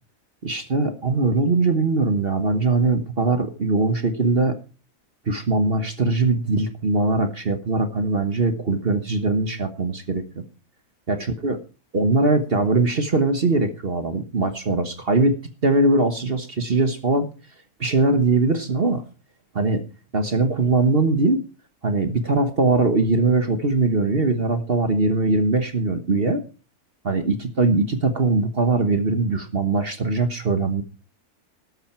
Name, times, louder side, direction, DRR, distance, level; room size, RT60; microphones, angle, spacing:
voice 1, 0.4-4.6 5.3-10.4 11.1-11.6 11.9-17.3 17.8-19.0 19.5-19.8 20.1-21.4 21.8-26.4 27.0-30.8, right 3 dB, 40° right, 9 dB, 1.3 m, -21 dB
13.5 x 11.5 x 4.5 m, 0.34 s
omnidirectional pair, 1.7 m